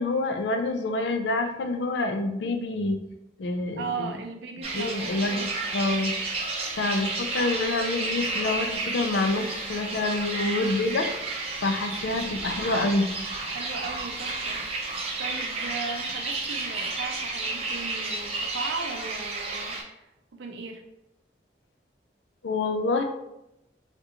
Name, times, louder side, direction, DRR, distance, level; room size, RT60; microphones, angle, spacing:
voice 1, 0.0-3.0 3.4-4.1 4.7-11.1 11.6-13.1 22.4-23.0, left 2 dB, 75° left, 5 dB, 0.4 m, -27 dB
voice 2, 3.8-5.5 13.5-14.6 15.2-20.8, right 4 dB, 80° right, 4 dB, 0.5 m, -37 dB
sound 1, 4.6-19.8, right 3 dB, 35° right, 0.6 m, -32 dB
3.5 x 2.4 x 2.8 m, 0.86 s
head